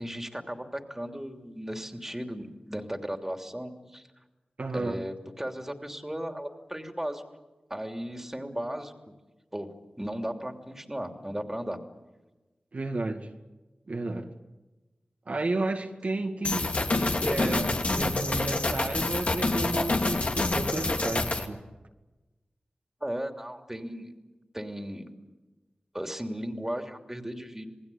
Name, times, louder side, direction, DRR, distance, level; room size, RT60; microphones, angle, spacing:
voice 1, 0.0-4.1 4.7-7.2 7.7-8.9 9.5-9.7 10.0-11.8 23.0-24.1 24.5-25.0 25.9-27.7, equal, 15° right, 5 dB, 3.0 m, -36 dB
voice 2, 4.6-5.0 12.7-13.3 13.9-14.3 15.3-21.6, right 2 dB, 60° right, 3 dB, 2.3 m, -32 dB
sound 1, 16.4-21.5, left 2 dB, 55° left, 2.6 m, -27 dB
28.0 x 19.5 x 8.7 m, 1.1 s
wide cardioid pair, 60°, 3 cm